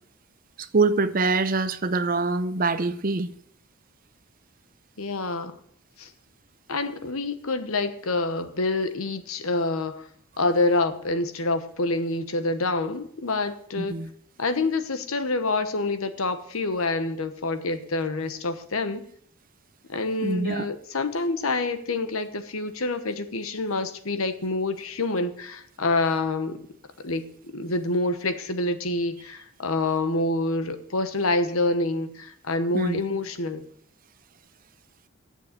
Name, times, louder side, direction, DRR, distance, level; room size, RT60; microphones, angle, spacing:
voice 1, 0.6-3.3 13.8-14.1 20.2-20.7 32.7-33.0, right 3 dB, 40° right, 0.6 m, -24 dB
voice 2, 5.0-5.5 6.0-6.1 6.7-10.1 10.4-14.0 14.4-19.1 19.9-26.6 27.0-33.7, left 2 dB, 75° left, 1.1 m, -27 dB
8.4 x 7.2 x 8.5 m
head